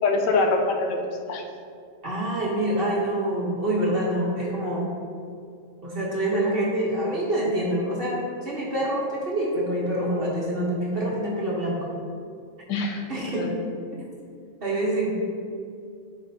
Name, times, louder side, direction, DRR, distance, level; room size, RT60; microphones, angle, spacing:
voice 1, 0.0-1.4 12.7-13.6, left 3 dB, 80° left, 2 dB, 1.3 m, -25 dB
voice 2, 2.0-4.8 5.8-12.1 13.1-13.5 14.6-15.1, right 1 dB, 40° right, -5 dB, 0.9 m, -26 dB
9.4 x 4.2 x 2.7 m, 2.4 s
omnidirectional pair, 1.9 m